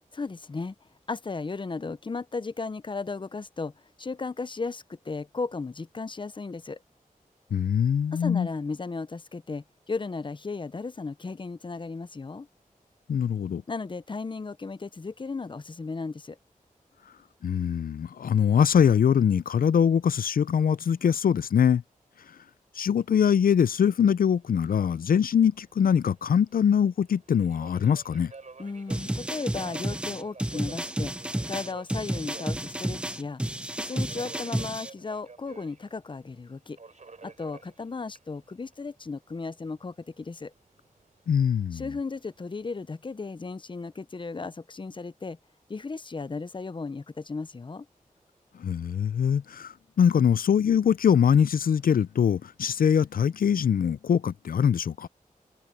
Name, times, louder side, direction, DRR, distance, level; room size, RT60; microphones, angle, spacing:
voice 1, 0.1-0.7 1.1-3.7 4.0-6.8 8.1-12.5 13.7-16.4 28.6-31.1 31.5-33.4 33.8-36.8 37.2-40.5 41.7-45.4 45.7-47.9, left 4 dB, 35° left, 0.6 m, -35 dB
voice 2, 7.5-8.5 13.1-13.6 17.4-21.8 22.8-28.3 41.3-41.9 48.6-55.1, left 8 dB, 85° left, 0.4 m, -23 dB
Subway metro underground, 24.3-42.7, right 4 dB, 55° right, 6.9 m, -52 dB
sound 1, 28.9-34.9, right 1 dB, 5° right, 0.7 m, -31 dB
wide cardioid pair, 115°, 14 cm